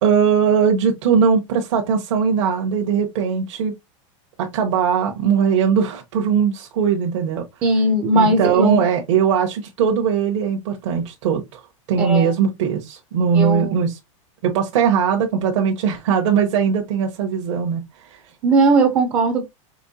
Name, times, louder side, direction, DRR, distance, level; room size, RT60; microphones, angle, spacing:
voice 1, 0.0-3.7 4.4-7.4 8.1-11.6 11.9-14.0 14.4-18.2, right 7 dB, 65° right, 1.1 m, -20 dB
voice 2, 7.6-8.9 12.0-12.3 13.3-13.7 18.4-19.5, right 2 dB, 20° right, 0.5 m, -18 dB
5.2 x 3.0 x 2.7 m
supercardioid pair, 175°, 17 cm